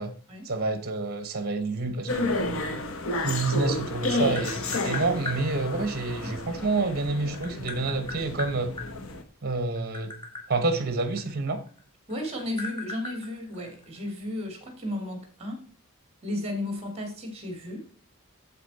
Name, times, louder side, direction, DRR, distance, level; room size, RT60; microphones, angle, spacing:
voice 1, 0.4-2.7 3.2-8.7 9.4-10.1 10.5-11.6, right 3 dB, 45° right, 1.1 m, -28 dB
sound 1, 2.1-9.2, left 2 dB, 70° left, 1.1 m, -31 dB
Tap, 3.9-5.4 6.7-8.9 9.6-11.8 12.1-14.1, left 3 dB, 20° left, 2.0 m, -37 dB
voice 2, 12.1-15.7 16.2-17.8, left 1 dB, 30° right, 2.4 m, -34 dB
8.4 x 7.5 x 4.2 m
head